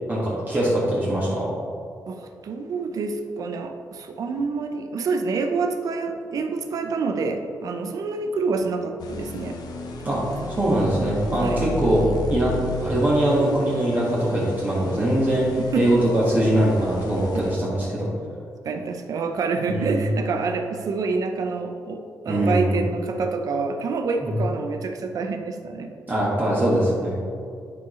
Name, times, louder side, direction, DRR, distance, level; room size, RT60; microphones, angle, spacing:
voice 1, 0.1-1.5 10.0-10.2 10.5-15.5 15.7-18.1 19.7-20.1 22.3-22.8 24.2-24.4 26.1-27.2, right 1 dB, 25° right, -7 dB, 1.5 m, -22 dB
voice 2, 2.1-9.6 11.4-11.6 15.7-15.9 18.6-25.9, right 4 dB, 60° right, 6 dB, 0.6 m, -27 dB
sound 1, 9.0-17.5, left 2 dB, 80° left, 0.8 m, -34 dB
10.5 x 4.7 x 3.1 m, 2.4 s
wide cardioid pair, 135°, 7 cm